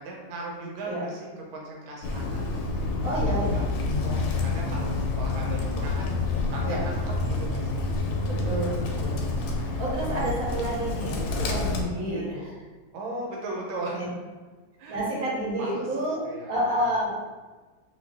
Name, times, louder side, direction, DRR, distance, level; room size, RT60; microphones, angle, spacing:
voice 1, 0.0-2.4 3.5-3.6 4.2-7.9 12.0-12.5 12.9-14.1 14.8-15.2 15.6-16.6, right 2 dB, 90° right, -2 dB, 1.6 m, -38 dB
Bird, 2.0-11.8, left 3 dB, 80° left, 1.3 m, -28 dB
voice 2, 3.0-3.6 3.9-4.2 6.6-6.8 8.3-9.2 9.5-12.5 13.9-14.1 14.9-17.1, right 1 dB, 50° right, -5 dB, 1.3 m, -30 dB
3.2 x 2.7 x 3.3 m, 1.3 s
omnidirectional pair, 2.1 m